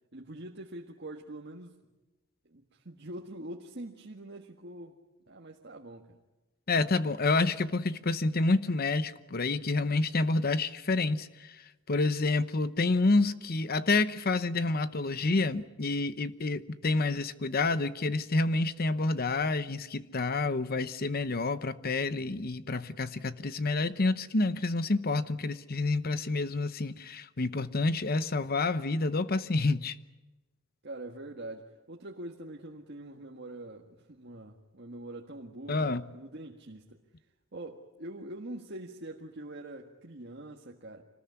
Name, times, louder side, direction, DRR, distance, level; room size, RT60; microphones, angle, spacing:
voice 1, 0.1-1.8 2.4-5.0 5.3-6.2 30.8-37.0 37.5-41.0, right 1 dB, 55° right, 1.7 m, -44 dB
voice 2, 6.7-30.0 35.7-36.0, left 3 dB, 50° left, 0.9 m, -28 dB
26.5 x 20.0 x 9.6 m
head